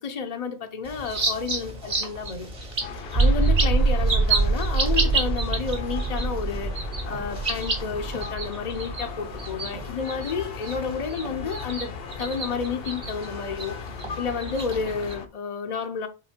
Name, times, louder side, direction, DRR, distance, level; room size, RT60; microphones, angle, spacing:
voice 1, 0.0-2.5 3.1-11.9 12.2-16.1, left 5 dB, 45° left, 0.6 m, -31 dB
sound 1, 0.8-15.1, right 3 dB, 60° right, 1.9 m, -32 dB
sound 2, 2.8-15.3, left 6 dB, 70° left, 0.9 m, -39 dB
sound 3, 3.0-9.5, right 3 dB, 45° right, 0.9 m, -25 dB
7.6 x 4.2 x 4.3 m
omnidirectional pair, 1.1 m